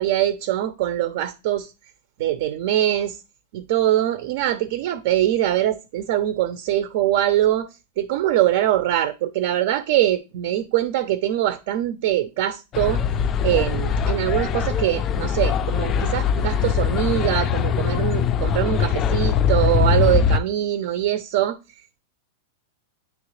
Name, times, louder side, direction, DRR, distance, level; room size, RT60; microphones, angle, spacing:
voice 1, 0.0-1.7 2.2-3.2 3.5-7.7 8.0-13.0 13.4-21.6, right 12 dB, 55° right, 0.6 m, -23 dB
Westminster - Tamil Demo in Parliment Sq, 12.7-20.4, left 7 dB, 25° left, 0.4 m, -22 dB
9.5 x 3.2 x 3.2 m
supercardioid pair, 155°, 0 cm